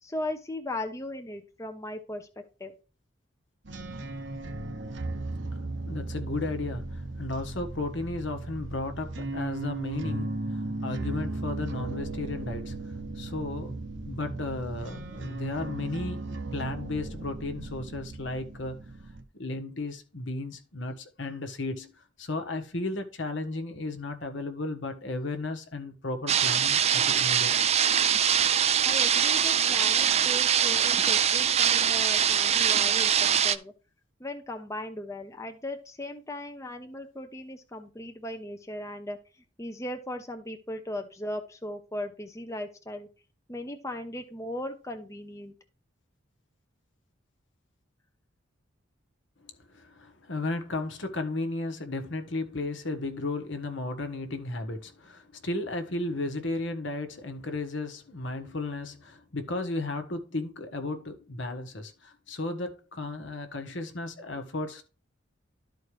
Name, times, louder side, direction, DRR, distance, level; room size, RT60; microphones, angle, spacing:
voice 1, 0.0-2.3 2.6-2.7 28.8-33.7 34.2-39.2 39.6-43.1 43.5-45.5, left 1 dB, 15° left, 0.8 m, -37 dB
sound 1, 3.6-19.2, right 2 dB, 60° right, 1.0 m, -36 dB
voice 2, 5.9-18.8 19.4-21.9 22.2-27.6 49.7-64.8, left 2 dB, 65° left, 1.4 m, -34 dB
sound 2, 26.3-33.6, right 9 dB, 30° right, 0.4 m, -23 dB
12.5 x 4.5 x 3.2 m
head